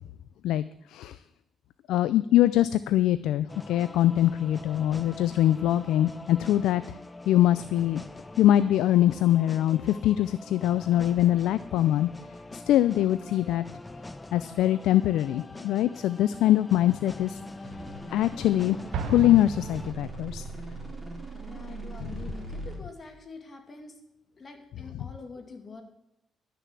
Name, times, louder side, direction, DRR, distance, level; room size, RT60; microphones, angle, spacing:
voice 1, 0.4-1.2 1.9-6.8 7.3-8.0 8.4-12.1 12.5-13.6 14.3-17.4 18.1-18.8 19.1-20.4 22.1-22.2 25.0-25.1, left 13 dB, 85° left, 14 dB, 0.4 m, -23 dB
sound 1, 3.5-19.9, left 2 dB, 20° left, 0.8 m, -44 dB
sound 2, 17.6-22.8, right 2 dB, 5° right, 3.6 m, -40 dB
Explosion, 18.9-20.7, right 6 dB, 75° right, 1.1 m, -35 dB
voice 2, 21.4-23.9 24.4-25.8, left 4 dB, 35° left, 4 dB, 2.5 m, -45 dB
12.5 x 6.7 x 7.5 m, 0.89 s
cardioid pair, 90°, 0 cm